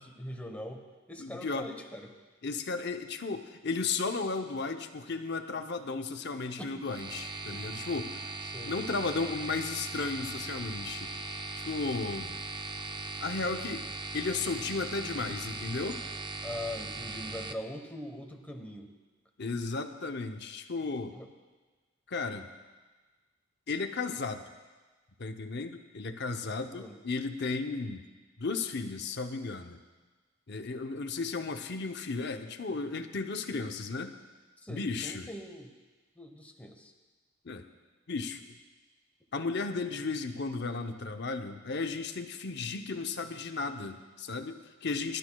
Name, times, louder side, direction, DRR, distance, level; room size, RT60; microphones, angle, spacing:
voice 1, 0.0-2.1 6.6-6.7 8.5-8.7 16.4-18.9 21.1-21.3 26.7-27.0 34.6-35.7 36.2-36.9, left 1 dB, 10° left, 3 dB, 1.1 m, -42 dB
voice 2, 1.2-1.7 2.4-8.3 8.6-11.1 11.6-12.4 13.2-13.9 14.1-16.0 19.4-21.1 22.1-22.5 23.7-24.4 25.2-28.0 28.4-29.8 30.5-34.1 34.7-35.3 37.4-37.6 38.1-38.4 39.3-45.2, left 4 dB, 55° left, 6 dB, 0.8 m, -34 dB
sound 1, 6.8-17.5, right 3 dB, 20° right, 0.5 m, -39 dB
23.0 x 12.0 x 2.3 m, 1.3 s
head